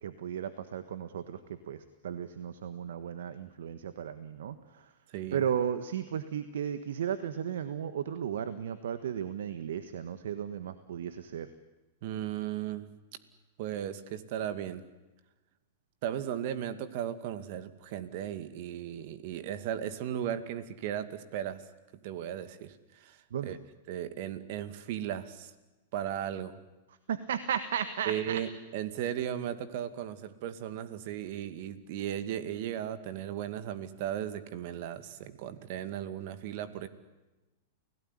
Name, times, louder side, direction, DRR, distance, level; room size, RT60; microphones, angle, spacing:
voice 1, 0.0-4.6 5.3-11.5 23.3-23.6 27.1-28.4, right 8 dB, 75° right, 12 dB, 1.4 m, -35 dB
voice 2, 5.1-5.4 12.0-12.9 13.6-14.8 16.0-21.6 22.0-23.6 23.9-25.5 25.9-26.6 28.1-36.9, right 10 dB, 60° right, 11 dB, 2.3 m, -36 dB
29.0 x 17.5 x 10.0 m, 1.1 s
hypercardioid pair, 110°, 0 cm